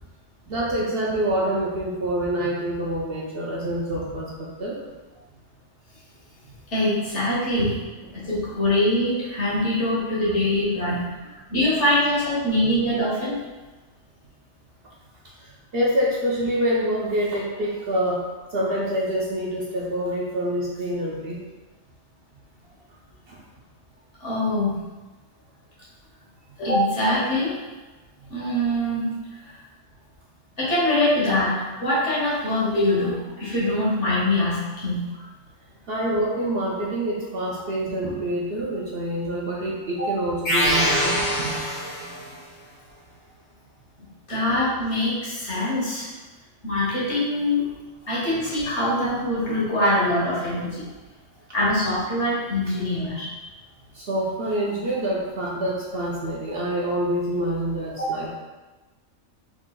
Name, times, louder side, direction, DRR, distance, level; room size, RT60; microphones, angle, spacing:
voice 1, 0.5-4.8 7.6-7.7 15.4-21.4 23.3-23.4 35.9-41.5 44.5-44.6 53.9-58.3, right 1 dB, 55° right, -4 dB, 0.7 m, -26 dB
voice 2, 6.7-7.7 8.1-11.0 11.5-13.4 24.2-24.8 26.6-27.6 28.3-29.1 30.6-35.2 40.0-40.1 44.3-46.1 46.6-47.7 48.1-50.8 51.5-53.3 58.0-58.1, left 1 dB, 60° left, -7 dB, 1.8 m, -23 dB
sound 1, 40.4-42.3, equal, 80° left, 1.9 m, -23 dB
4.8 x 3.8 x 2.2 m, 1.2 s
omnidirectional pair, 1.4 m